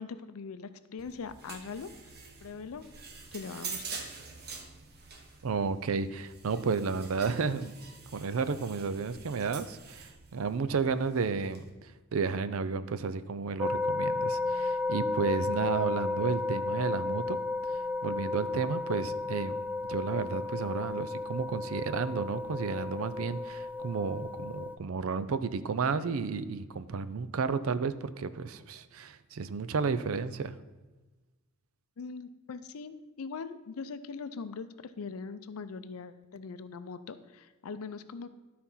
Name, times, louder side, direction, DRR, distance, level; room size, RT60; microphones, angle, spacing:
voice 1, 0.0-1.9 2.4-2.9 3.3-4.1 32.0-38.3, left 5 dB, 75° left, 12 dB, 0.5 m, -41 dB
sound 1, 1.0-11.7, right 5 dB, 50° right, 1.1 m, -46 dB
voice 2, 5.4-7.8 8.1-17.4 17.7-19.6 19.9-30.5, right 5 dB, 70° right, 13 dB, 0.5 m, -32 dB
sound 2, 13.6-24.8, left 3 dB, 10° right, 0.4 m, -33 dB
12.0 x 4.3 x 5.5 m, 1.2 s
head